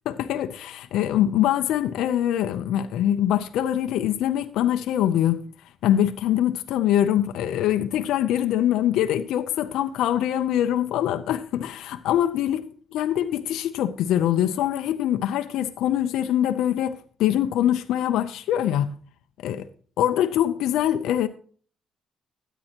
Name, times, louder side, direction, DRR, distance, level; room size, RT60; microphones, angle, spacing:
voice 1, 0.1-5.4 5.8-12.6 12.9-18.9 19.4-19.7 20.0-21.3, left 11 dB, 85° left, 0.6 m, -23 dB
13.0 x 9.0 x 2.9 m
cardioid pair, 90°, 0 cm